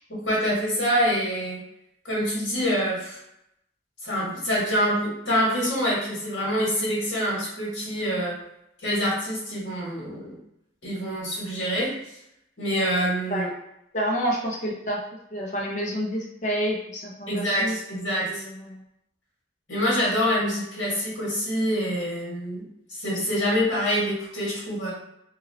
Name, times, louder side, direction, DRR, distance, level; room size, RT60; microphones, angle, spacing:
voice 1, 0.1-1.6 2.0-3.2 4.0-8.4 8.8-10.4 10.8-12.0 12.6-13.5 17.3-18.4 19.7-22.6 22.9-24.9, equal, 75° left, -5 dB, 1.5 m, -26 dB
voice 2, 13.9-15.0 15.3-18.0 18.2-18.7, equal, 40° left, -3 dB, 0.8 m, -29 dB
3.0 x 2.7 x 2.7 m, 0.80 s
head